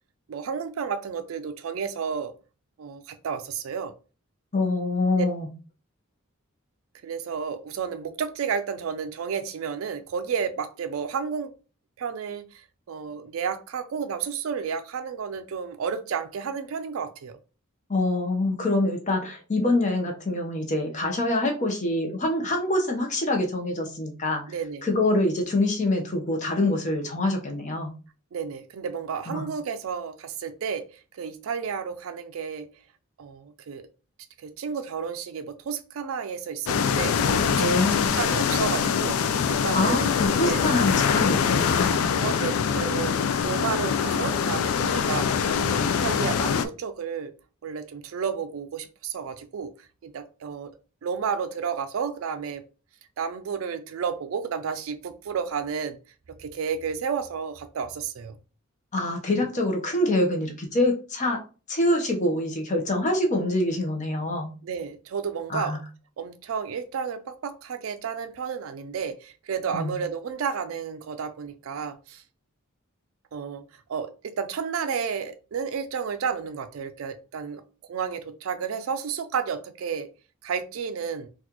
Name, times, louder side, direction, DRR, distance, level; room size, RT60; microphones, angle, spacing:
voice 1, 0.3-2.3 2.8-3.9 5.2-5.3 7.0-11.5 12.0-17.4 24.5-24.9 28.3-30.9 31.1-32.7 33.2-33.9 34.4-37.7 38.1-40.1 40.5-40.6 42.2-47.3 47.6-49.7 50.0-50.7 51.0-52.6 53.2-56.0 56.4-58.4 64.6-65.8 66.2-72.2 73.3-73.6 73.9-77.6 77.9-80.1 80.4-81.3, right 6 dB, 75° right, 0.4 m, -31 dB
voice 2, 4.5-5.5 17.9-24.4 24.8-27.9 29.3-29.5 37.6-38.2 39.7-42.0 58.9-61.4 61.7-64.5 65.5-65.8 69.7-69.9, left 2 dB, 35° left, 0.8 m, -25 dB
sound 1, 36.7-46.6, left 7 dB, 80° left, 0.4 m, -24 dB
4.1 x 2.4 x 2.9 m
head